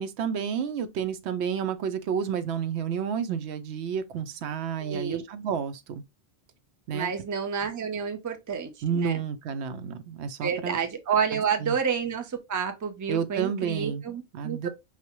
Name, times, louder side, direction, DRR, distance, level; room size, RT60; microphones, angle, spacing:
voice 1, 0.0-6.0 6.9-7.1 8.8-10.8 11.3-11.7 13.1-14.0 14.3-14.7, right 7 dB, 85° right, 0.9 m, -30 dB
voice 2, 4.8-5.2 6.9-9.2 10.4-14.7, right 6 dB, 30° right, 0.4 m, -29 dB
4.8 x 2.1 x 2.8 m
omnidirectional pair, 1.1 m